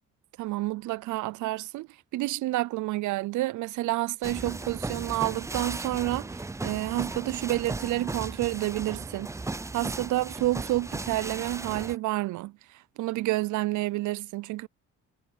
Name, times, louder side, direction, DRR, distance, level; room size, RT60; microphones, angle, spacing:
voice 1, 0.4-9.3 9.7-14.7, right 17 dB, 75° right, 0.5 m, -29 dB
sound 1, 4.2-12.0, right 3 dB, 10° right, 0.5 m, -36 dB
cardioid pair, 90°, 30 cm